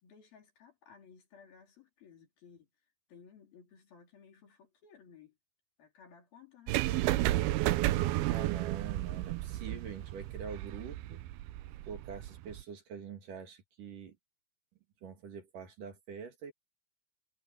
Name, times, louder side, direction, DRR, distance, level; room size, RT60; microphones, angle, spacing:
voice 1, 0.0-2.7 3.1-5.4 5.8-7.6, left 6 dB, 65° left, 5.8 m, -58 dB
sound 1, 6.7-12.6, right 16 dB, 85° right, 2.6 m, -32 dB
voice 2, 8.2-11.2 11.9-14.2 15.0-16.5, right 6 dB, 60° right, 3.9 m, -44 dB
omnidirectional pair, 4.5 m